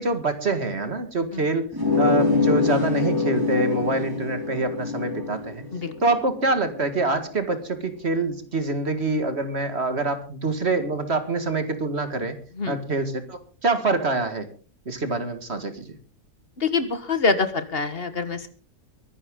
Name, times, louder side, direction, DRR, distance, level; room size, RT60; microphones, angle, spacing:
voice 1, 0.0-1.7 2.0-5.6 6.0-12.4 12.7-14.5 14.9-16.0, right 3 dB, 45° right, 9 dB, 2.0 m, -25 dB
sound 1, 1.7-7.0, left 4 dB, 15° right, 4.8 m, -25 dB
voice 2, 16.6-18.4, left 4 dB, 40° left, 11 dB, 1.6 m, -25 dB
23.0 x 11.0 x 3.7 m, 0.38 s
omnidirectional pair, 1.6 m